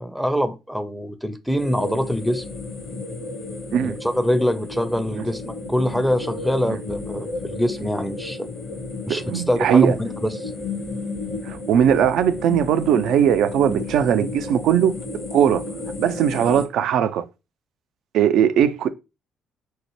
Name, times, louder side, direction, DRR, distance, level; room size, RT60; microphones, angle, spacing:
voice 1, 0.0-2.4 3.8-8.5 9.0-10.5, equal, ahead, 0.5 m, -24 dB
sound 1, 1.6-16.7, left 3 dB, 50° left, 0.8 m, -33 dB
voice 2, 9.1-9.9 11.4-14.9 15.3-15.6 16.0-17.3 18.1-18.9, right 9 dB, 60° right, 0.3 m, -19 dB
5.4 x 2.0 x 3.1 m
figure-of-eight pair, 45°, 0 cm